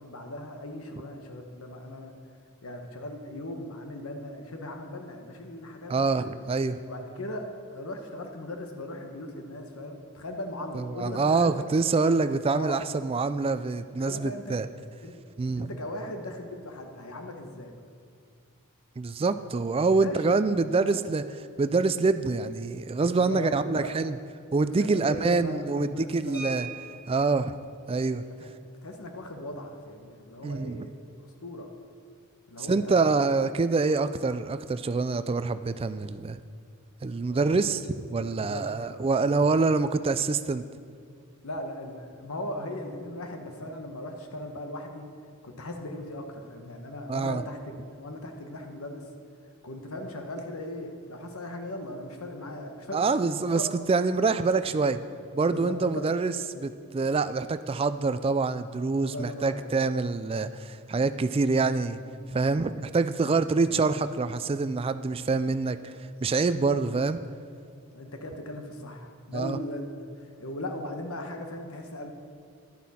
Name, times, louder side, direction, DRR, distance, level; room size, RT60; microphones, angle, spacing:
voice 1, 0.0-2.1 2.6-6.4 6.9-11.6 12.6-12.8 14.0-14.6 15.0-15.1 15.6-17.7 20.0-20.2 20.8-21.0 23.0-24.0 24.8-26.7 28.4-28.5 28.8-30.9 31.2-31.7 32.5-33.0 37.3-37.8 38.3-39.6 41.4-45.1 45.4-49.1 49.6-53.1 53.5-53.6 54.1-54.2 55.5-56.0 59.0-59.7 63.3-63.4 63.6-63.8 67.9-72.1, left 1 dB, 80° left, 4 dB, 1.2 m, -38 dB
voice 2, 5.9-6.8 10.7-14.7 15.4-15.7 19.0-21.2 21.6-24.2 24.5-26.7 27.1-27.5 27.9-28.2 30.4-30.9 32.6-36.4 37.0-40.6 47.1-47.4 52.9-53.6 53.9-55.0 55.3-62.0 62.3-65.9 66.2-67.2 69.3-69.6, right 4 dB, 25° right, 12 dB, 0.3 m, -26 dB
sound 1, 26.3-27.4 28.9-29.0 29.3-29.5 29.9-30.2, right 3 dB, 10° right, 3.0 m, -40 dB
11.0 x 10.0 x 4.3 m, 2.2 s
head